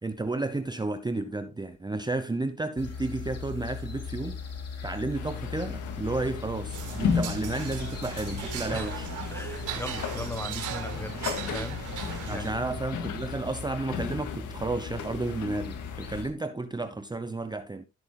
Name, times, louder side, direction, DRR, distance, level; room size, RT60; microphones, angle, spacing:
voice 1, 0.0-4.4 4.8-9.1 12.3-17.9, right 2 dB, 15° right, 0.9 m, -32 dB
sound 1, 2.8-16.3, left 6 dB, 55° left, 3.8 m, -39 dB
sound 2, 5.1-16.2, left 7 dB, 75° left, 2.1 m, -36 dB
sound 3, 6.7-12.5, right 7 dB, 85° right, 3.9 m, -38 dB
voice 2, 9.3-11.2 11.5-11.8 12.3-12.6, left 1 dB, 10° left, 1.4 m, -38 dB
16.0 x 8.1 x 2.2 m
cardioid pair, 90°, 30 cm